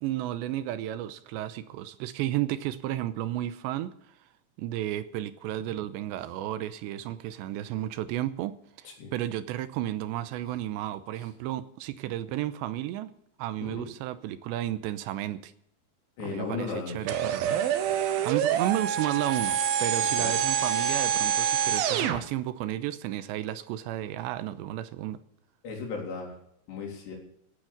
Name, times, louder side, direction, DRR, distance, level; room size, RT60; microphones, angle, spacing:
voice 1, 0.0-3.9 4.6-13.1 13.4-15.5 16.2-17.6 17.9-25.2, right 13 dB, 85° right, 13 dB, 3.0 m, -33 dB
voice 2, 16.2-17.0 20.2-20.4 25.6-26.3 26.7-27.2, left 4 dB, 70° left, 0 dB, 5.7 m, -35 dB
sound 1, 17.1-22.2, right 8 dB, 70° right, 2.6 m, -26 dB
16.0 x 9.1 x 7.1 m, 0.76 s
omnidirectional pair, 5.1 m